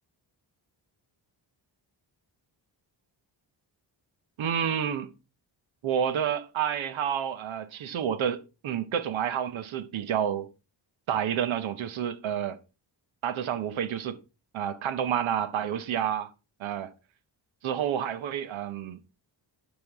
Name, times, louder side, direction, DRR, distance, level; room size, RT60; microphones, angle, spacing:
voice 1, 4.4-5.1 5.8-10.5 11.1-12.6 13.2-14.2 14.5-16.3 16.6-16.9 17.6-19.0, right 9 dB, 90° right, 1.0 m, -29 dB
11.5 x 5.3 x 3.5 m
cardioid pair, 80°, 46 cm